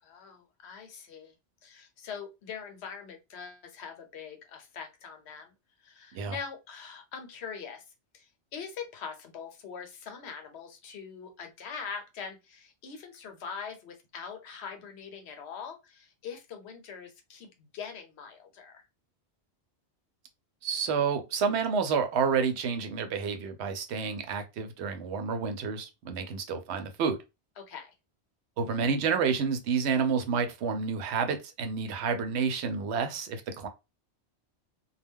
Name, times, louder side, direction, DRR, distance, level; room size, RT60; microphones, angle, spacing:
voice 1, 0.0-1.3 1.6-5.5 5.8-7.8 8.1-18.9 27.6-27.9, left 6 dB, 75° left, 0.9 m, -43 dB
voice 2, 20.6-27.2 28.6-33.7, right 6 dB, 75° right, 0.8 m, -29 dB
2.2 x 2.1 x 3.5 m
omnidirectional pair, 1.1 m